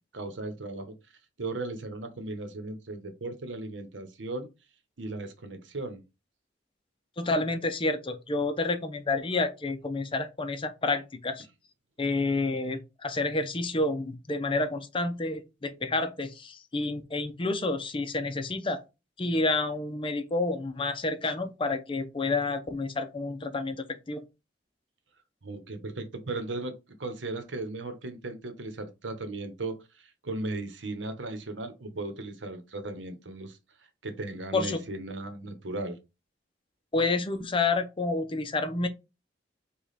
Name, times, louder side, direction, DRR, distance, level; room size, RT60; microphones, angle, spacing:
voice 1, 0.1-1.0 1.4-4.5 5.0-6.0 25.4-33.6 34.0-36.0, right 2 dB, 80° right, 0.9 m, -36 dB
voice 2, 7.2-11.5 12.0-18.8 19.2-24.2 34.5-34.8 36.9-38.9, left 3 dB, 30° left, 0.5 m, -29 dB
5.1 x 2.3 x 4.1 m
head